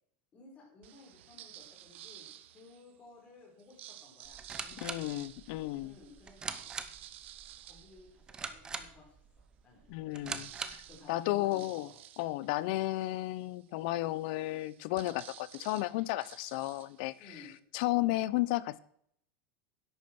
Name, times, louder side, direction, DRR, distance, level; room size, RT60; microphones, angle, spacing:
voice 1, 0.3-5.2 5.8-6.7 7.6-9.1 9.4-9.9 10.9-11.9 17.2-17.5, left 2 dB, 20° left, -2 dB, 4.4 m, -56 dB
sound 1, 0.8-3.0 3.6-8.8 9.3-9.4 9.6-17.6, right 12 dB, 85° right, 1.0 m, -53 dB
sound 2, 4.2-11.0, right 5 dB, 10° right, 0.7 m, -43 dB
voice 2, 4.8-5.9 9.9-10.8 11.1-11.9 12.2-17.3 17.7-18.8, left 17 dB, 50° left, 18 dB, 0.6 m, -33 dB
11.0 x 8.4 x 6.0 m, 0.68 s
supercardioid pair, 180°, 6 cm